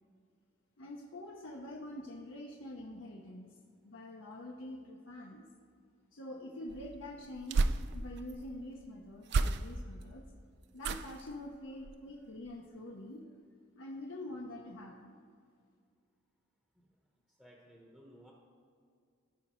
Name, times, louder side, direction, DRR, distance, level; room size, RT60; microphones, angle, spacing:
voice 1, 0.8-3.5 3.8-5.5 6.1-10.3 10.7-13.3 13.8-15.2, left 1 dB, 70° left, -2 dB, 0.7 m, -46 dB
sound 1, 6.7-8.3 9.2-10.0 10.8-11.3 11.8-12.1 12.4-12.5, right 3 dB, 55° right, 0.3 m, -33 dB
voice 2, 17.4-18.3, equal, 5° right, -3 dB, 0.9 m, -57 dB
15.0 x 5.1 x 3.0 m, 2.2 s
head